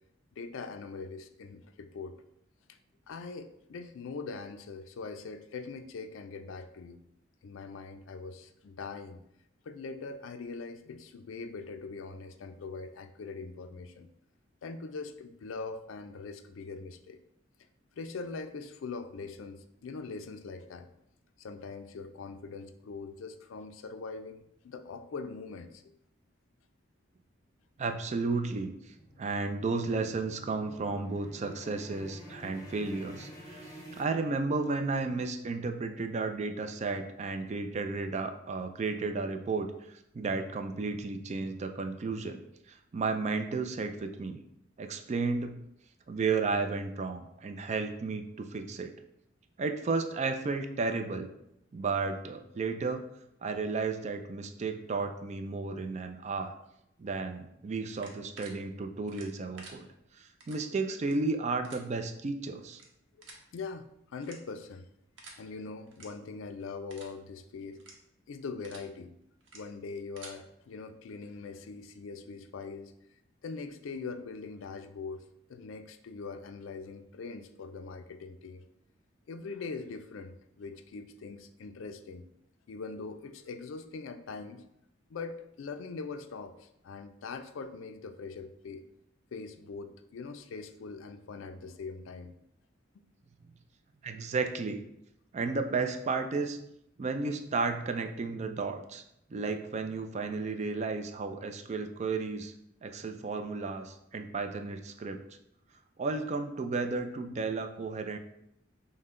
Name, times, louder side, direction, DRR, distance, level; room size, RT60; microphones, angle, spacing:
voice 1, 0.4-2.2 2.7-2.8 3.1-7.0 7.4-9.2 9.7-14.1 14.6-17.2 17.9-20.9 21.4-25.8 63.2-63.3 63.5-64.9 65.4-67.8 68.3-69.1 69.5-72.9 73.4-75.2 75.5-78.7 79.3-82.3 82.7-84.7 85.1-88.8 89.3-92.4 92.9-93.0, left 4 dB, 85° left, 9 dB, 0.4 m, -42 dB
sound 1, 27.6-34.9, equal, 20° left, 0.7 m, -49 dB
voice 2, 27.8-42.4 42.7-44.4 44.8-45.6 46.1-48.9 49.6-51.3 51.7-53.1 53.4-56.6 57.0-59.9 60.2-62.8 94.0-94.8 95.3-96.6 97.0-99.0 99.3-102.5 102.8-105.2 106.0-108.2, right 4 dB, 35° right, 7 dB, 0.3 m, -33 dB
sound 2, 57.9-58.5 59.1-59.7 60.4-60.6 61.0-61.1 61.6-61.8 62.7-62.9 63.2-63.4 64.2-64.6 65.2-65.4 65.9-66.1 66.4-66.6 66.9-67.1 67.7-67.9 68.4-68.9 69.4-69.6 70.0-70.3, right 3 dB, 70° right, 0.9 m, -50 dB
5.5 x 2.1 x 3.6 m, 0.78 s
head